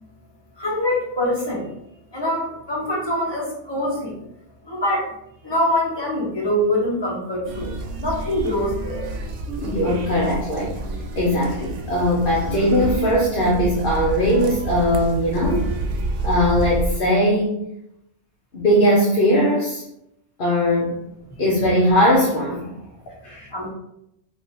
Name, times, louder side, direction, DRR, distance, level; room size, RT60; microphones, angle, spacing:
voice 1, 0.6-1.7 2.1-4.1 4.6-5.1 5.4-9.0 21.3-21.4 23.5-23.7, left 1 dB, 20° left, -5 dB, 1.1 m, -24 dB
sound 1, 7.4-17.0, right 2 dB, 85° right, 0.9 m, -29 dB
voice 2, 9.6-10.8 11.2-15.7 16.2-17.5 18.5-19.8 20.4-21.0 21.4-22.7 23.2-23.5, equal, 55° left, -4 dB, 0.8 m, -19 dB
2.8 x 2.6 x 3.9 m, 0.79 s
omnidirectional pair, 1.2 m